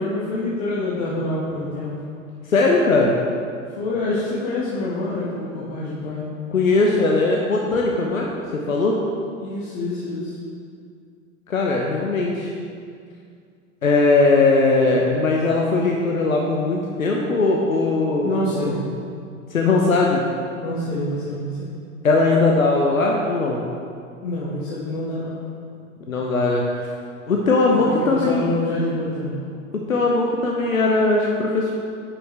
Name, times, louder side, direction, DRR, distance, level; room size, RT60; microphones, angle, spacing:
voice 1, 0.0-1.9 3.8-6.2 9.4-10.3 18.2-18.8 20.5-21.7 24.2-25.4 27.7-29.3, left 1 dB, 50° left, -7 dB, 1.6 m, -26 dB
voice 2, 2.5-3.2 6.5-8.3 8.7-9.0 11.5-12.5 13.8-18.8 19.5-20.3 22.0-23.6 26.1-26.9 27.3-28.5 29.7-31.7, left 3 dB, 85° left, -1 dB, 0.9 m, -19 dB
9.4 x 6.1 x 3.3 m, 2.3 s
figure-of-eight pair, 95°, 40 cm